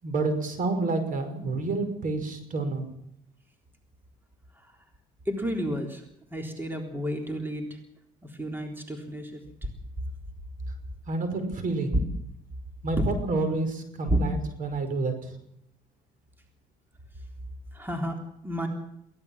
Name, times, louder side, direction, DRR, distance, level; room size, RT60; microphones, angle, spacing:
voice 1, 0.0-2.9 11.1-12.1 12.8-15.3, right 3 dB, 50° right, 8 dB, 5.4 m, -29 dB
voice 2, 5.3-6.0 6.3-7.8 8.2-9.4 13.0-13.1 14.1-14.2 17.7-18.2 18.4-18.7, equal, 10° right, 3 dB, 3.8 m, -30 dB
23.0 x 17.0 x 7.4 m, 0.74 s
cardioid pair, 110°, 17 cm